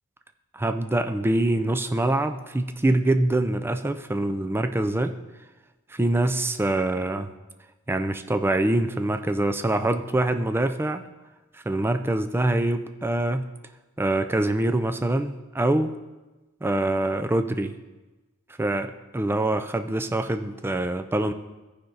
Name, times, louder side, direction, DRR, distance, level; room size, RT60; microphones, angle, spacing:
voice 1, 0.5-5.1 5.9-7.3 7.9-11.0 11.5-13.5 14.0-15.9 16.6-17.7 18.6-21.3, right 1 dB, 10° right, 8 dB, 0.3 m, -24 dB
14.5 x 5.1 x 3.9 m, 1.1 s
head